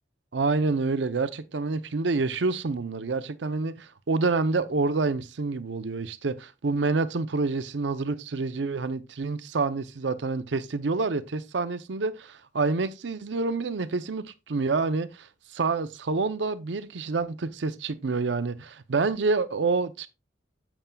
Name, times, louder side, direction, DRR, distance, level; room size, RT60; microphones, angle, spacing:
voice 1, 0.3-20.1, right 3 dB, 80° right, 0.6 m, -28 dB
8.8 x 7.2 x 2.3 m
head